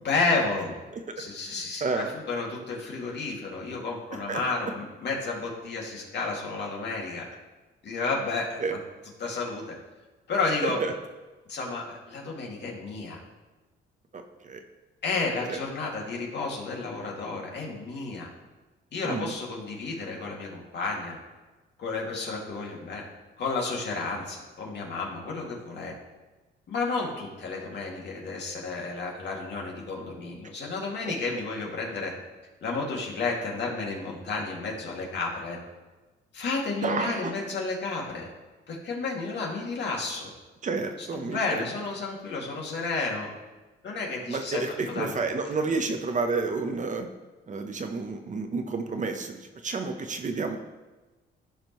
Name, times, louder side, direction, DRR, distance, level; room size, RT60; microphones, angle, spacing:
voice 1, 0.0-0.8 1.2-7.2 7.8-8.8 9.2-9.8 10.3-10.8 11.5-13.2 15.0-18.3 18.9-21.2 21.8-23.0 23.4-25.9 26.7-32.1 32.6-35.6 36.3-38.3 38.7-40.3 41.0-43.3 43.8-44.6 44.9-45.2, left 3 dB, 60° left, -2 dB, 2.3 m, -31 dB
voice 2, 0.9-1.6 1.8-2.1 4.3-4.4 8.6-8.8 10.6-10.9 14.4-14.6 15.5-15.6 19.0-19.3 36.8-37.3 40.6-41.6 44.3-47.1 47.5-50.6, right 4 dB, 40° right, 6 dB, 0.9 m, -30 dB
15.0 x 5.1 x 3.1 m, 1.2 s
cardioid pair, 90°, 20 cm